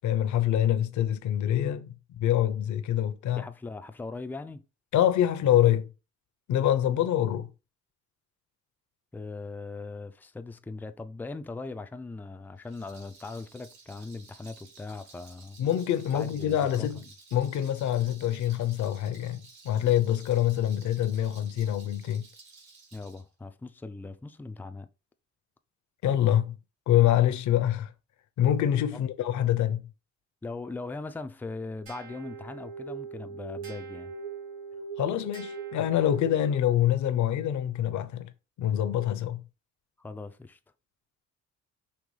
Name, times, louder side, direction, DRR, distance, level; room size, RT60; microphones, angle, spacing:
voice 1, 0.0-3.5 4.9-5.9 6.5-7.5 15.6-17.0 17.3-22.3 26.0-26.5 26.9-27.9 28.4-29.9 35.0-38.3 38.6-39.4, left 11 dB, 70° left, 0.7 m, -25 dB
voice 2, 3.4-4.6 9.1-15.6 16.1-16.9 22.9-24.9 30.4-34.1 40.0-40.6, left 3 dB, 5° left, 0.3 m, -40 dB
Rattle, 12.6-23.2, right 4 dB, 65° right, 2.3 m, -54 dB
sound 1, 31.9-36.6, right 5 dB, 85° right, 2.4 m, -41 dB
5.4 x 3.0 x 3.2 m
cardioid pair, 90°, 30 cm